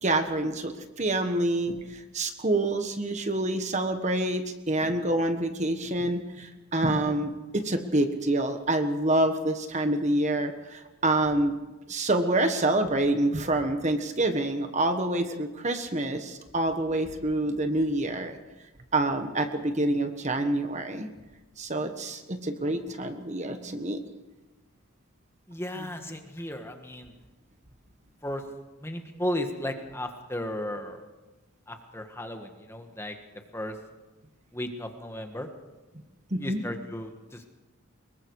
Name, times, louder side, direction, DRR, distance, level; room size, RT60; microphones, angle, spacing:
voice 1, 0.0-11.5 11.9-18.4 18.9-21.1 21.6-24.0 36.3-36.6, right 1 dB, 30° right, 7 dB, 1.4 m, -27 dB
voice 2, 25.5-27.1 28.2-28.4 28.8-31.1 31.7-33.1 33.5-33.8 34.5-35.5 36.4-37.5, left 1 dB, 10° left, 5 dB, 1.6 m, -35 dB
24.5 x 22.0 x 4.8 m, 1.1 s
head